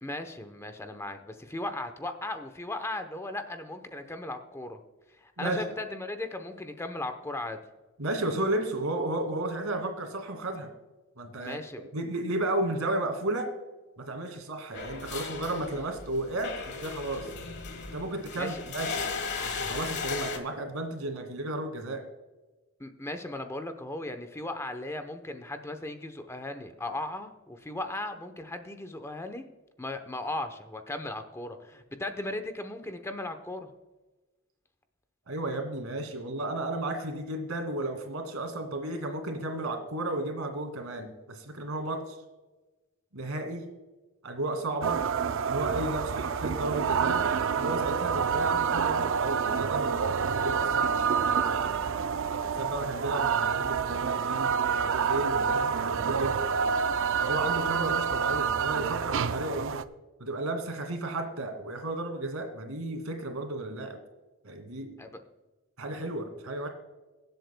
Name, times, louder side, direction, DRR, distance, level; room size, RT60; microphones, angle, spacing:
voice 1, 0.0-4.8 5.1-7.6 11.4-11.8 18.4-18.6 22.8-29.4 29.8-33.7 65.0-65.2, left 2 dB, 10° left, 7 dB, 0.8 m, -37 dB
voice 2, 8.0-10.7 11.2-11.6 11.9-13.6 14.0-17.3 17.9-19.1 19.4-22.0 35.3-42.2 43.1-43.7 44.2-45.1 45.4-47.2 47.6-51.9 52.5-56.5 57.2-59.8 60.2-64.0 64.4-65.0 65.8-66.7, right 2 dB, 90° right, 5 dB, 2.1 m, -33 dB
sound 1, 14.7-20.4, left 5 dB, 55° left, 1.4 m, -36 dB
sound 2, 44.8-59.8, right 6 dB, 60° right, 0.5 m, -28 dB
23.5 x 7.9 x 2.2 m, 1.2 s
head